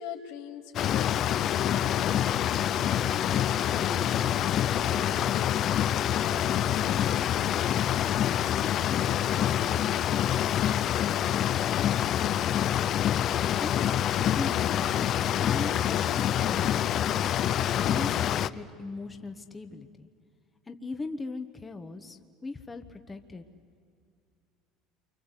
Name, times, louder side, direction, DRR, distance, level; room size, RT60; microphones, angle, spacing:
voice 1, 0.0-4.3 4.7-5.5 5.9-11.8, left 7 dB, 85° left, 3 dB, 2.6 m, -43 dB
sound 1, 0.7-18.5, left 10 dB, 45° left, 0.6 m, -26 dB
voice 2, 13.6-14.8 15.3-16.8 17.0-17.3 17.8-20.1 20.7-23.4, left 3 dB, 15° left, 6 dB, 1.1 m, -39 dB
29.0 x 24.5 x 8.2 m, 2.3 s
cardioid pair, 130°, 0 cm